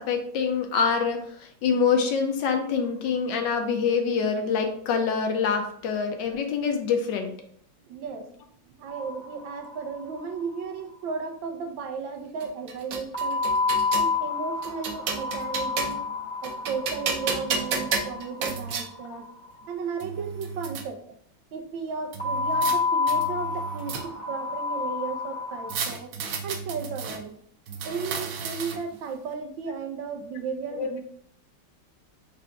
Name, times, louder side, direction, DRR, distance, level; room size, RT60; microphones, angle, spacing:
voice 1, 0.0-7.4 19.0-19.2 30.8-30.9, left 6 dB, 75° left, 5 dB, 1.3 m, -25 dB
voice 2, 7.9-8.3 8.7-13.4 13.9-16.0 16.4-19.3 19.7-21.0 21.5-26.1 26.4-27.3 27.8-31.0, right 5 dB, 85° right, 5 dB, 1.4 m, -34 dB
sound 1, 8.9-9.9 10.1-10.2 10.5-10.6 13.1-19.3 22.2-25.8, left 4 dB, 20° left, 0.8 m, -29 dB
sound 2, 12.4-14.1 14.6-16.1 16.4-18.9 19.6-19.7 20.0-20.8 22.1-22.8 23.1-24.3 25.7-27.2 27.7-29.0, right 5 dB, 65° right, 0.8 m, -32 dB
4.7 x 2.5 x 4.4 m, 0.63 s
omnidirectional pair, 2.1 m